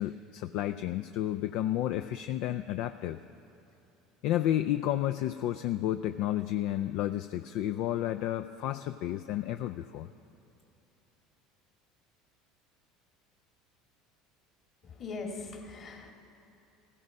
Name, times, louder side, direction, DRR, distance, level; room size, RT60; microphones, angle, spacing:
voice 1, 0.0-3.2 4.2-10.1, left 12 dB, 65° left, 10 dB, 0.3 m, -31 dB
voice 2, 14.8-16.1, left 3 dB, 45° left, 2 dB, 2.3 m, -40 dB
15.5 x 12.5 x 5.3 m, 2.9 s
hypercardioid pair, 75°, 0 cm